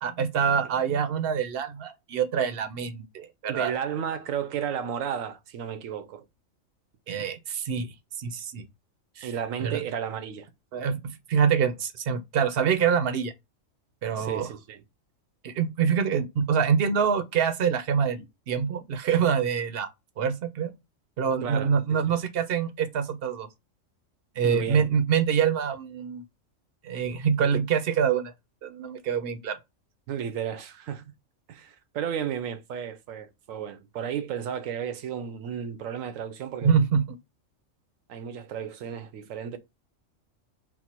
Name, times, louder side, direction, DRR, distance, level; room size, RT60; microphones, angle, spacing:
voice 1, 0.0-3.7 7.1-7.9 8.2-8.6 9.2-9.3 9.6-9.8 10.7-11.0 11.3-13.3 14.0-14.5 15.4-19.9 20.2-20.7 21.2-23.5 24.4-26.2 26.8-28.3 28.6-29.6 36.6-37.0, right 7 dB, 60° right, 0.7 m, -25 dB
voice 2, 3.5-6.2 9.2-10.5 14.2-14.8 21.4-22.1 24.4-24.9 30.1-31.1 31.5-36.7 38.1-39.6, right 8 dB, 90° right, 1.1 m, -33 dB
4.4 x 2.0 x 4.2 m
omnidirectional pair, 1.4 m